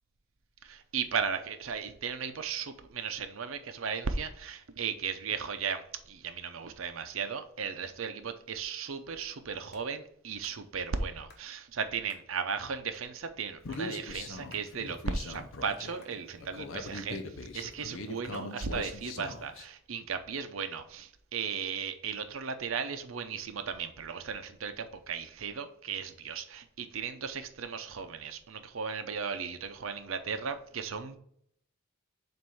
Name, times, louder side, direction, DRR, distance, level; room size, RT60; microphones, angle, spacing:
voice 1, 0.6-31.2, right 6 dB, 85° right, 9 dB, 0.7 m, -36 dB
sound 1, 9.7-9.9 10.4-10.6 11.3-11.5 12.1-12.3 12.9-13.1 13.6-13.9 14.5-14.7 15.1-15.8 16.0-16.2 16.9-17.4 18.3-18.5, left 4 dB, 50° left, 0.9 m, -57 dB
Human voice, 13.6-19.6, left 2 dB, 75° left, 0.7 m, -41 dB
7.6 x 2.6 x 5.4 m, 0.68 s
head